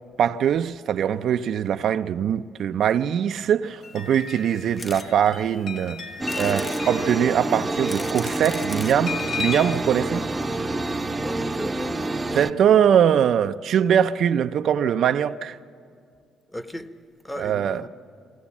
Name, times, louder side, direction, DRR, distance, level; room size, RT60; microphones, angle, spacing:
voice 1, 0.2-6.0 6.4-10.3 12.3-15.6 17.4-17.8, right 9 dB, 70° right, 0.4 m, -22 dB
sound 1, 3.6-9.8, left 5 dB, 65° left, 1.3 m, -36 dB
sound 2, 4.8-5.1 5.6-5.7 6.3-6.9 7.6-9.0 9.8-9.9 10.1-10.2 10.4-10.5, left 3 dB, 30° left, 0.6 m, -38 dB
sound 3, 6.2-12.5, right 2 dB, 15° right, 0.7 m, -28 dB
voice 2, 11.1-11.9 16.5-16.9 17.2-17.9, equal, 10° left, 0.9 m, -36 dB
22.5 x 17.5 x 7.2 m
cardioid pair, 90°, 0 cm